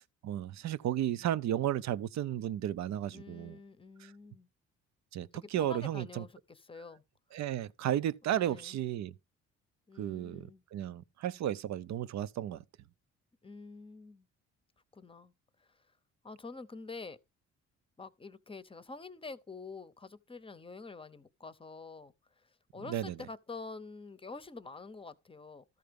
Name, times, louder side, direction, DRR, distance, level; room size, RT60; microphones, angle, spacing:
voice 1, 0.2-3.6 5.1-6.2 7.3-9.1 10.0-12.6 22.9-23.1, right 11 dB, 65° right, 0.6 m, -33 dB
voice 2, 3.1-4.5 5.3-7.0 8.3-8.8 9.9-10.6 13.4-14.3 14.9-15.3 15.6-15.9 16.2-17.2 18.0-25.6, left 3 dB, 20° left, 0.7 m, -47 dB
13.5 x 4.6 x 5.2 m
cardioid pair, 90°, 30 cm